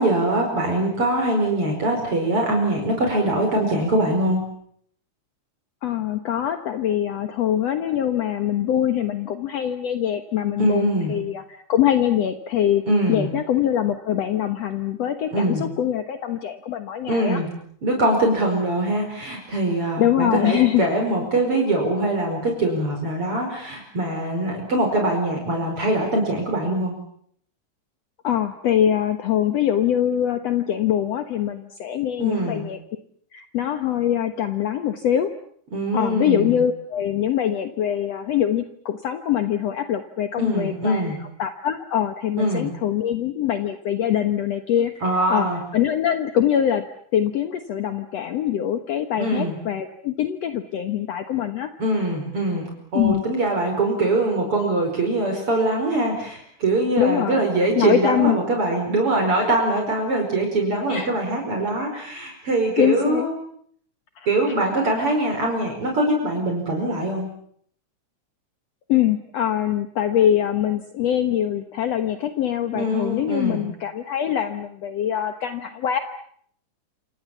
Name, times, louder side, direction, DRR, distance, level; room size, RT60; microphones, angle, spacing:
voice 1, 0.0-4.4 10.6-11.1 12.9-13.3 15.3-15.6 17.1-17.5 17.8-26.9 32.2-32.6 35.7-36.6 40.4-41.2 42.4-42.7 45.0-45.6 49.2-49.6 51.8-63.3 64.3-67.3 72.7-73.7, right 1 dB, 45° right, 2 dB, 5.9 m, -23 dB
voice 2, 5.8-11.4 11.7-12.8 13.1-17.4 20.0-20.8 28.2-32.8 33.3-35.3 35.9-45.0 45.3-45.5 45.7-46.8 47.1-51.7 52.9-53.2 57.0-57.4 57.8-58.4 60.9-61.1 61.8-61.9 62.8-63.3 64.2-64.3 68.9-76.0, left 10 dB, 60° left, 8 dB, 2.2 m, -23 dB
28.5 x 27.0 x 7.2 m, 0.66 s
omnidirectional pair, 3.5 m